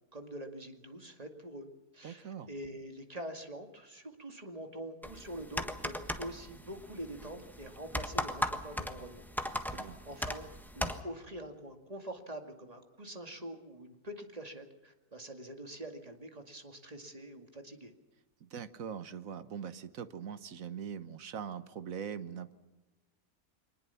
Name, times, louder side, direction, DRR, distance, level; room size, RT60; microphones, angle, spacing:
voice 1, 0.1-1.7 1.9-9.2 9.6-10.5 10.7-17.9, right 1 dB, 25° right, 5 dB, 2.3 m, -45 dB
voice 2, 2.0-2.5 9.5-10.0 18.4-22.5, right 7 dB, 65° right, 12 dB, 1.5 m, -42 dB
sound 1, 5.0-11.0, equal, ahead, 1.3 m, -38 dB
24.0 x 20.0 x 7.0 m, 1.1 s
omnidirectional pair, 1.6 m